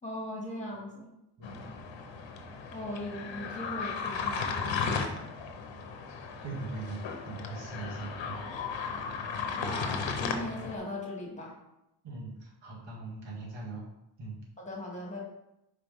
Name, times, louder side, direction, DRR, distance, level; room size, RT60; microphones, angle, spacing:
voice 1, 0.0-1.1 2.7-5.3 9.5-11.6 14.6-15.2, left 1 dB, 15° left, -3 dB, 2.2 m, -39 dB
sound 1, 1.4-10.8, left 5 dB, 80° left, 0.9 m, -35 dB
voice 2, 6.4-8.4 12.0-13.9 14.2-14.4, right 3 dB, 75° right, -3 dB, 2.0 m, -40 dB
4.9 x 4.6 x 5.3 m, 0.87 s
cardioid pair, 100°, 44 cm